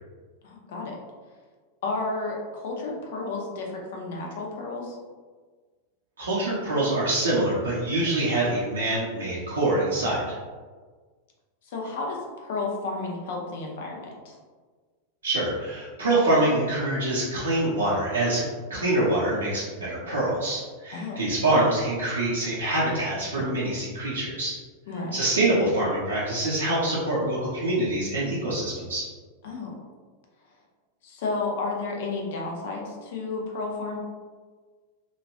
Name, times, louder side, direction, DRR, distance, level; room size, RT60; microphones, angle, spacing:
voice 1, 0.4-1.0 1.8-5.0 11.7-14.4 20.9-21.2 24.9-25.2 29.4-29.7 31.0-34.0, left 3 dB, 55° left, 0 dB, 0.6 m, -32 dB
voice 2, 6.2-10.4 15.2-24.6 25.1-29.1, right 1 dB, 70° right, -8 dB, 0.6 m, -25 dB
3.0 x 2.5 x 2.5 m, 1.5 s
figure-of-eight pair, 90°, 0 cm